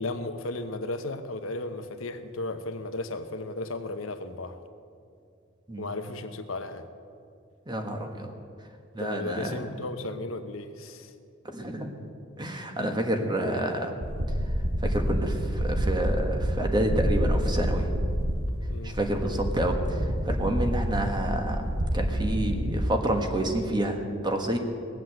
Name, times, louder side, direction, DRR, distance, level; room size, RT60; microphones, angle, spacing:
voice 1, 0.0-4.6 5.8-6.9 9.0-11.1 18.7-19.0, left 2 dB, 90° left, 8 dB, 1.0 m, -35 dB
voice 2, 7.7-8.3 8.9-9.7 11.4-11.9 12.4-14.0 14.8-17.9 18.8-20.0 20.3-21.7 21.9-24.6, right 1 dB, 20° right, 4 dB, 1.4 m, -29 dB
sound 1, 14.0-22.7, equal, 85° right, 1.7 m, -28 dB
19.0 x 7.8 x 7.8 m, 2.4 s
head